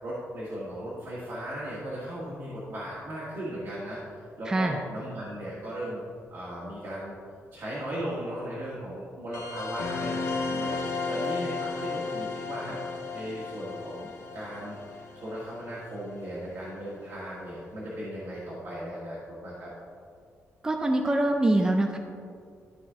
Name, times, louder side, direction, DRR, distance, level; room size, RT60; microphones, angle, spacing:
voice 1, 0.0-4.0 4.4-6.0 6.3-7.1 7.5-19.7, right 1 dB, 60° right, -8 dB, 1.6 m, -37 dB
voice 2, 4.5-4.8 20.6-22.0, right 1 dB, 15° right, 3 dB, 0.4 m, -24 dB
sound 1, 9.3-16.4, left 4 dB, 85° left, 1.2 m, -34 dB
12.5 x 4.4 x 3.6 m, 2.3 s
wide cardioid pair, 165°, 5 cm